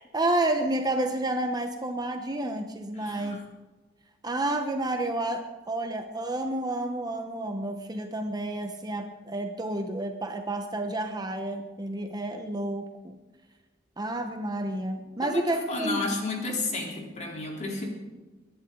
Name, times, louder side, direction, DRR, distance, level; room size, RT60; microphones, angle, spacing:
voice 1, 0.0-3.4 4.2-13.2 14.0-16.1, right 1 dB, 20° right, 5 dB, 1.0 m, -30 dB
voice 2, 3.0-3.4 15.2-17.9, left 2 dB, 40° left, -1 dB, 3.6 m, -32 dB
22.5 x 11.0 x 3.9 m, 1.2 s
head